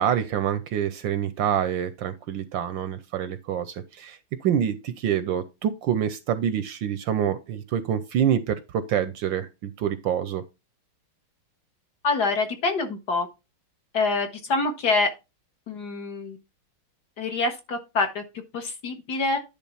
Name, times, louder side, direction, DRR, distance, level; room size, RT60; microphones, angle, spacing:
voice 1, 0.0-10.4, right 9 dB, 70° right, 1.2 m, -26 dB
voice 2, 12.0-13.3 13.9-15.1 15.7-16.4 17.2-18.2 18.5-19.4, left 3 dB, 50° left, 1.6 m, -25 dB
10.5 x 3.6 x 5.6 m
omnidirectional pair, 2.4 m